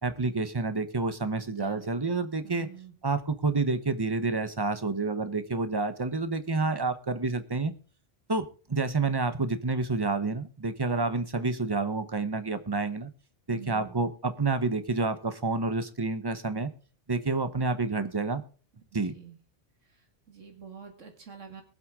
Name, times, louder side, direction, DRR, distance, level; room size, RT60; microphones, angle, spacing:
voice 1, 0.0-2.7 3.0-7.7 8.3-13.1 13.5-16.7 17.1-18.4 18.9-19.1, right 3 dB, 20° right, 11 dB, 1.0 m, -29 dB
voice 2, 1.5-2.9 13.5-14.1 19.0-19.3 20.3-21.6, right 7 dB, 80° right, 3 dB, 2.3 m, -47 dB
22.5 x 7.7 x 3.7 m, 0.39 s
omnidirectional pair, 1.3 m